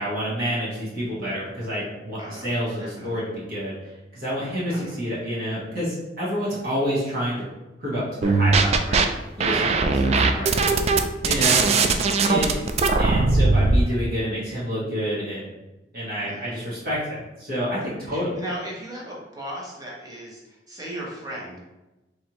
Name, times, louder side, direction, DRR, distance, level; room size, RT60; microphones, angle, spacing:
voice 1, 0.0-7.3 7.8-9.0 9.4-10.7 11.2-11.6 12.3-12.6 13.0-15.5 15.9-18.3, equal, 55° right, -8 dB, 1.4 m, -28 dB
voice 2, 2.2-2.5 2.8-3.2 4.7-5.0 9.5-10.6 11.4-11.9 16.2-16.6 18.0-21.6, right 1 dB, 20° right, -4 dB, 1.1 m, -37 dB
sound 1, 8.2-9.0 9.4-13.8, right 4 dB, 35° right, 0.3 m, -19 dB
4.4 x 3.2 x 3.0 m, 1.0 s
head